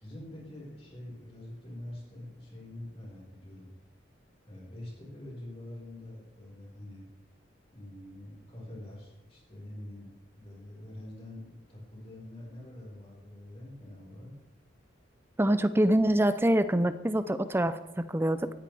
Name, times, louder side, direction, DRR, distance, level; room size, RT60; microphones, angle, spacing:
voice 1, 0.0-3.7 4.5-7.1 7.7-14.3, left 1 dB, 30° left, -4 dB, 5.0 m, -45 dB
voice 2, 15.4-18.5, right 1 dB, 10° right, 13 dB, 0.5 m, -25 dB
17.0 x 14.5 x 3.5 m, 1.1 s
head